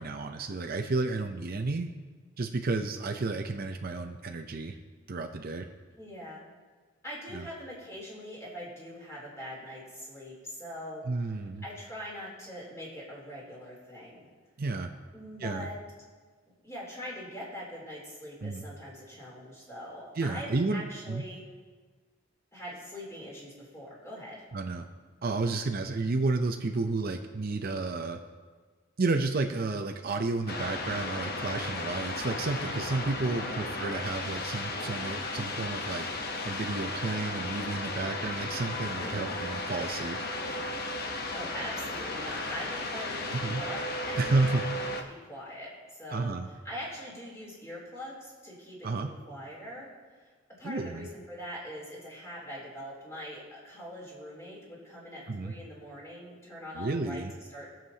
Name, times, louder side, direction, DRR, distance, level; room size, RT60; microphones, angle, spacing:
voice 1, 0.0-1.9 2.4-4.8 5.1-5.7 7.3-7.5 11.1-11.6 14.6-14.9 15.4-15.7 18.4-18.6 20.2-21.2 24.5-24.9 25.2-28.2 29.0-36.1 36.4-40.2 43.3-43.6 44.2-44.6 46.1-46.5 48.8-49.1 50.6-51.1 55.3-55.5 56.7-57.3, right 3 dB, 50° right, 4 dB, 0.6 m, -31 dB
voice 2, 6.0-6.4 7.0-11.4 11.6-14.3 15.1-15.8 16.6-21.4 22.5-24.5 33.4-33.7 38.7-39.3 41.3-45.7 46.0-50.3 50.6-57.2 57.5-57.7, equal, 15° left, -6 dB, 3.2 m, -43 dB
sound 1, 30.5-45.0, left 2 dB, 50° left, 0.9 m, -35 dB
22.0 x 7.4 x 2.8 m, 1.4 s
head